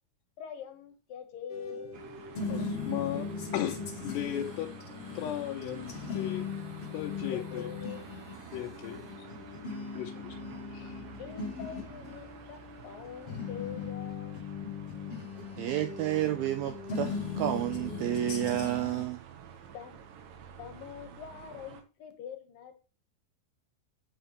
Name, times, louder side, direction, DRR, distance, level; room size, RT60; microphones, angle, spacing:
voice 1, 0.4-1.9 7.3-8.0 8.8-8.9 11.2-14.5 19.7-20.0 20.6-22.7, left 8 dB, 65° left, 7 dB, 2.8 m, -44 dB
sound 1, 1.5-19.0, left 4 dB, 45° left, 2.1 m, -39 dB
sound 2, 1.9-21.8, right 8 dB, 65° right, 2.5 m, -50 dB
voice 2, 2.5-3.3 3.5-4.7 5.1-6.5 6.9-7.7 8.5-9.3 10.0-10.4 10.7-11.0, left 11 dB, 80° left, 1 dB, 3.0 m, -36 dB
voice 3, 15.6-19.2, right 12 dB, 85° right, 9 dB, 2.1 m, -31 dB
9.2 x 8.8 x 3.2 m, 0.32 s
omnidirectional pair, 5.0 m